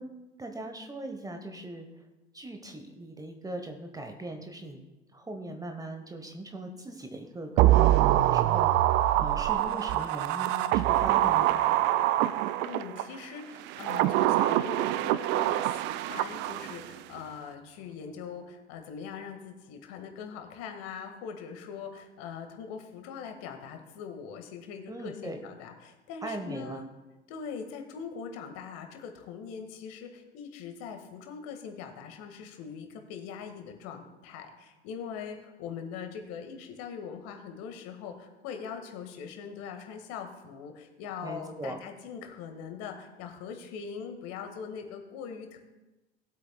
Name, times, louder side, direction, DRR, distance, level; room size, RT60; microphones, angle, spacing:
voice 1, 0.0-1.9 2.3-4.8 5.1-11.5 24.9-25.4 26.2-26.8 41.2-41.8, right 1 dB, 10° right, 5 dB, 1.0 m, -40 dB
sound 1, 7.6-13.0 13.7-16.9 17.2-17.3, right 14 dB, 35° right, 0.4 m, -25 dB
voice 2, 12.6-26.9 27.3-45.6, left 6 dB, 50° left, 5 dB, 1.7 m, -42 dB
19.0 x 8.2 x 2.2 m, 1.1 s
figure-of-eight pair, 75°, 33 cm